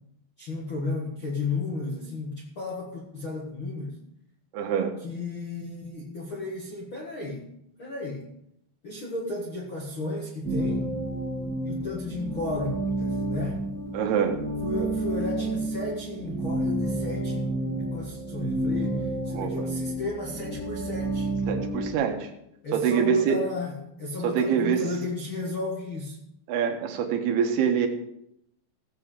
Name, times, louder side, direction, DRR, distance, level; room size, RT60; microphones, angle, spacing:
voice 1, 0.4-4.0 5.0-7.5 7.8-8.2 8.8-10.9 11.6-13.6 14.6-17.4 17.8-21.3 22.6-26.2, left 2 dB, 75° left, -3 dB, 1.1 m, -34 dB
voice 2, 4.5-4.9 13.9-14.4 19.3-19.7 21.5-22.3 22.7-23.4 24.2-24.8 26.5-27.9, right 7 dB, 70° right, 4 dB, 2.9 m, -25 dB
sound 1, 10.4-21.9, right 1 dB, 40° right, 1.5 m, -30 dB
17.0 x 7.8 x 4.9 m, 0.78 s
omnidirectional pair, 5.4 m